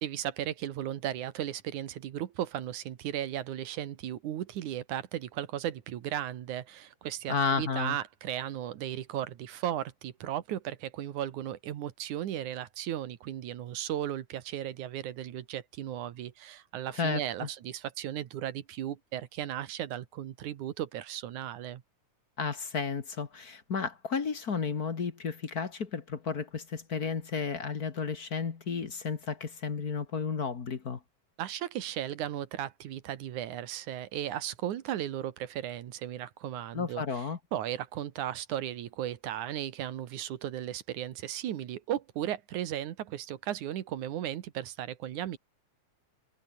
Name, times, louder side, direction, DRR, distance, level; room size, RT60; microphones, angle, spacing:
voice 1, 0.0-21.8 31.4-37.2 37.5-45.4, right 11 dB, 85° right, 2.9 m, -36 dB
voice 2, 7.3-8.0 16.9-17.5 22.4-31.0 36.7-37.4, left 5 dB, 40° left, 1.7 m, -32 dB
omnidirectional pair, 3.4 m